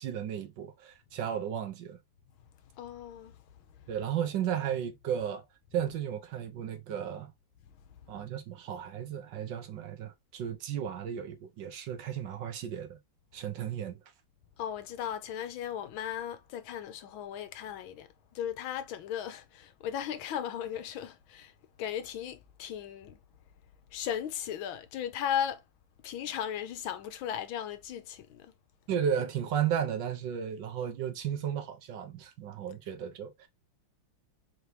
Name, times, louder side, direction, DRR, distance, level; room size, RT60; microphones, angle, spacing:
voice 1, 0.0-2.0 3.9-5.4 5.7-7.3 8.1-13.0 13.3-14.0 28.9-33.5, right 9 dB, 70° right, 1.4 m, -34 dB
voice 2, 2.7-3.4 3.8-3.9 14.6-21.5 21.8-23.2 23.9-25.6 26.0-28.5, left 9 dB, 85° left, 1.5 m, -36 dB
4.7 x 2.7 x 3.2 m
omnidirectional pair, 2.2 m